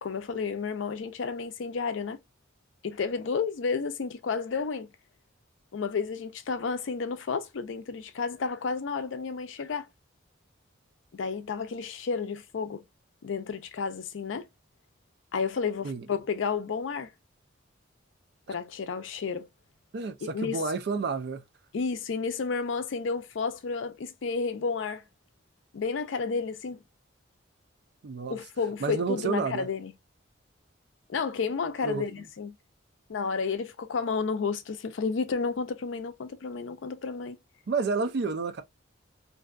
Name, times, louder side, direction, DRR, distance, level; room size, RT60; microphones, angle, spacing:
voice 1, 0.0-2.2 2.8-4.9 5.7-9.9 11.1-12.8 13.2-14.5 15.3-17.1 18.5-19.5 20.2-20.6 21.7-25.0 25.7-26.8 28.3-29.9 31.1-32.5 33.1-37.4, left 5 dB, 75° left, 0.4 m, -31 dB
voice 2, 19.9-21.4 28.0-28.4 28.8-29.7 31.8-32.2 37.7-38.6, right 4 dB, 55° right, 0.4 m, -30 dB
2.5 x 2.2 x 2.4 m
head